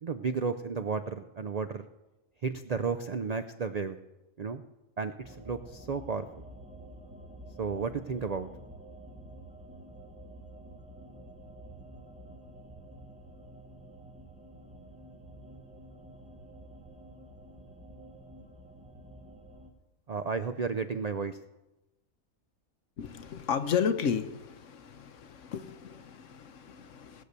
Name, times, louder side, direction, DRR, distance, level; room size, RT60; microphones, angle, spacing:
voice 1, 0.0-1.9 2.4-4.0 4.4-4.6 5.0-6.3 7.6-8.5 20.1-21.4, right 5 dB, 60° right, 10 dB, 0.4 m, -33 dB
sound 1, 5.2-19.7, right 1 dB, 5° right, 1.3 m, -49 dB
voice 2, 23.0-27.2, left 7 dB, 65° left, 10 dB, 1.2 m, -33 dB
19.0 x 6.6 x 6.7 m, 1.0 s
omnidirectional pair, 1.4 m